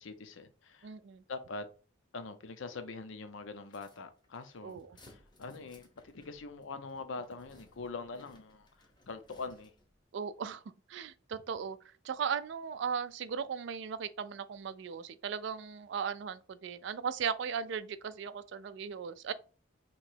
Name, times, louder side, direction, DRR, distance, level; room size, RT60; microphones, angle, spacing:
voice 1, 0.0-0.9 1.3-1.7 2.1-9.7, left 3 dB, 70° left, 0.6 m, -44 dB
voice 2, 0.8-1.2 4.6-5.0 10.1-10.6 10.9-11.8 12.0-19.3, right 7 dB, 60° right, 0.3 m, -37 dB
sound 1, 3.6-10.0, left 1 dB, 20° left, 0.7 m, -63 dB
3.0 x 2.8 x 4.4 m
head